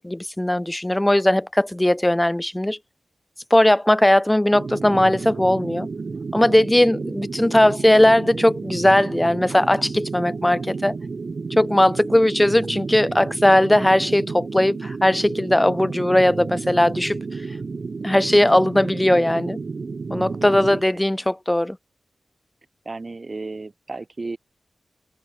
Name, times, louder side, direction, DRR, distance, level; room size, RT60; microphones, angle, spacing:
voice 1, 0.0-2.8 3.5-5.9 6.3-11.0 11.5-17.6 18.0-19.6 20.1-21.8, left 1 dB, 15° left, 0.7 m, -18 dB
sound 1, 4.5-20.8, right 4 dB, 55° right, 2.5 m, -31 dB
voice 2, 22.9-24.4, right 3 dB, 40° right, 4.0 m, -34 dB
wide cardioid pair, 70°, 0 cm